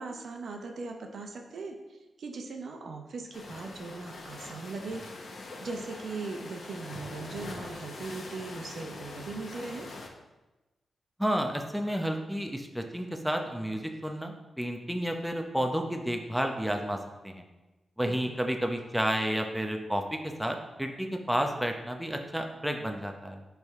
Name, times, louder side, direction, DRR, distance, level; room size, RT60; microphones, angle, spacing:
voice 1, 0.0-5.0 5.6-9.9 18.0-18.4, right 3 dB, 75° right, 3 dB, 0.8 m, -39 dB
sound 1, 3.3-10.1, left 3 dB, 65° left, 1.0 m, -43 dB
voice 2, 11.2-17.4 18.0-23.4, equal, 5° right, 4 dB, 0.7 m, -31 dB
10.5 x 3.5 x 3.6 m, 1.1 s
cardioid pair, 75°, 0 cm